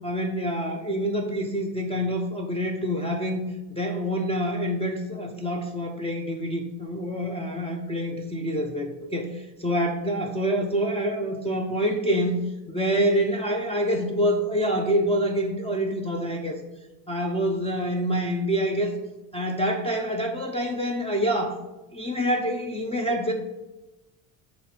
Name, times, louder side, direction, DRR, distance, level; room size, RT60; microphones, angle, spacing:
voice 1, 0.0-9.3 9.6-12.4 12.7-16.6 17.1-19.0 19.3-21.6 21.9-23.3, equal, 10° left, 2 dB, 0.7 m, -26 dB
7.5 x 2.6 x 4.9 m, 1.0 s
supercardioid pair, 75°, 47 cm